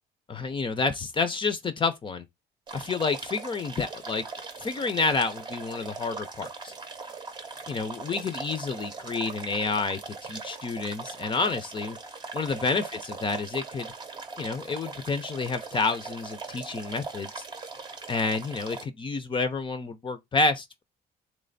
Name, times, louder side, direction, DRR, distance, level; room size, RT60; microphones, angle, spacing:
voice 1, 0.3-2.2 2.7-4.2 4.6-6.7 7.7-12.0 12.3-13.9 14.4-17.4 18.1-20.8, left 4 dB, 30° left, 0.6 m, -29 dB
sound 1, 2.7-18.8, right 4 dB, 25° right, 0.8 m, -40 dB
3.3 x 3.1 x 3.9 m
cardioid pair, 110°, 17 cm